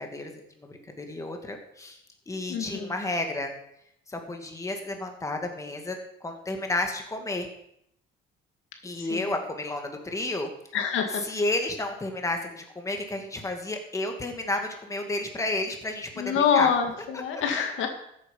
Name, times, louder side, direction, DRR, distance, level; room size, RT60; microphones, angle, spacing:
voice 1, 0.0-2.0 2.3-3.5 4.1-7.5 8.8-10.5 11.3-16.7, left 2 dB, 15° left, 4 dB, 2.1 m, -31 dB
voice 2, 2.5-2.9 9.0-9.3 10.7-11.3 16.2-17.9, left 7 dB, 75° left, 5 dB, 2.0 m, -26 dB
14.0 x 8.4 x 5.4 m, 0.75 s
cardioid pair, 130°, 20 cm